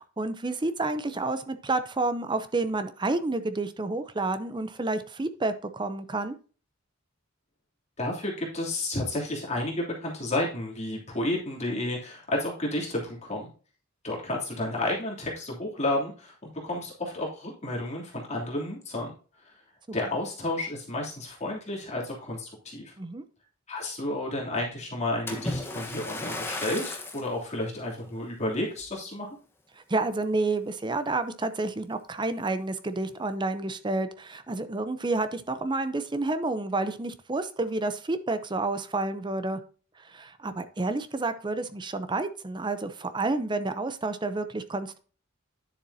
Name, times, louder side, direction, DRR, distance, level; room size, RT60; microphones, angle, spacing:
voice 1, 0.0-6.3 23.0-23.2 29.9-39.6 40.0-45.0, right 2 dB, 20° right, 11 dB, 0.6 m, -30 dB
voice 2, 8.0-13.5 14.0-16.3 16.6-19.1 19.4-19.5 19.9-22.9 23.7-29.3, left 1 dB, 35° left, -3 dB, 3.0 m, -31 dB
Splash splatter, 25.3-27.3 28.0-28.2 28.8-28.9, left 2 dB, 10° left, 1.2 m, -34 dB
10.5 x 7.1 x 2.7 m, 0.38 s
head